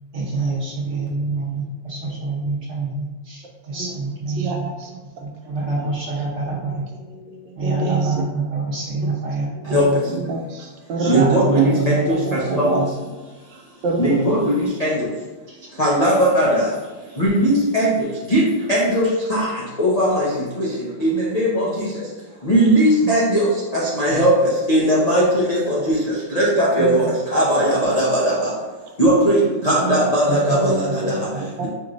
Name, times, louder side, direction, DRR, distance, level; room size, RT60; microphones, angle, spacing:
voice 1, 0.1-4.7 5.2-6.9 7.5-10.3 11.0-13.0 15.5-15.8 30.3-31.0 31.3-31.7, right 3 dB, 40° right, -7 dB, 1.4 m, -26 dB
voice 2, 4.4-4.9 7.3-8.0 10.1-13.1 13.8-14.2 23.0-23.3 26.8-27.1 29.7-30.1 30.5-31.7, right 2 dB, 75° right, 1 dB, 1.3 m, -26 dB
voice 3, 11.1-12.2 12.6-12.7 14.0-15.0 15.8-16.6 17.2-17.9 18.3-18.4 18.7-19.5 19.8-20.3 20.6-20.7 21.0-21.8 22.4-23.5 23.7-24.3 24.7-26.0 26.3-28.5 29.0-30.9, right 1 dB, 65° left, -7 dB, 0.4 m, -18 dB
5.8 x 3.0 x 2.5 m, 1.2 s
omnidirectional pair, 2.0 m